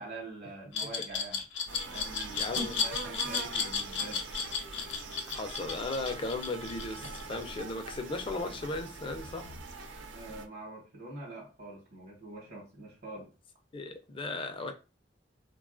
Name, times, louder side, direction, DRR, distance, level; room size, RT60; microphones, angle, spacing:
voice 1, 0.0-1.4 1.9-4.3 10.1-13.3, right 2 dB, 60° right, 0.9 m, -45 dB
Glass, 0.7-7.6, left 6 dB, 85° left, 0.5 m, -33 dB
sound 1, 1.7-10.5, right 3 dB, 85° right, 0.4 m, -42 dB
voice 2, 2.4-2.8 5.2-9.5 13.7-14.7, left 2 dB, 30° left, 0.4 m, -36 dB
3.4 x 2.3 x 2.4 m
head